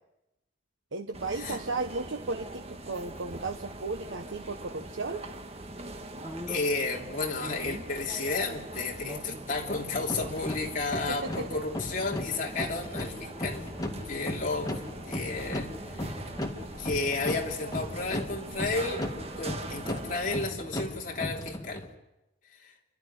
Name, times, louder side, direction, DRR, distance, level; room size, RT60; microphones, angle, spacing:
voice 1, 0.9-5.2 11.1-11.6, right 3 dB, 85° right, 5 dB, 1.1 m, -35 dB
sound 1, 1.1-20.5, right 2 dB, 30° right, 1.5 m, -42 dB
sound 2, 2.9-3.2 4.3-4.5 6.2-6.8 7.4-8.0 9.0-10.2, equal, 15° right, 1.7 m, -43 dB
voice 2, 6.5-13.7 14.1-16.2 16.8-19.1 19.4-21.8 22.6-22.7, left 3 dB, 45° left, 0 dB, 3.2 m, -32 dB
sound 3, 10.0-21.9, left 1 dB, 20° left, 2.1 m, -37 dB
29.5 x 12.5 x 9.9 m, 0.94 s
head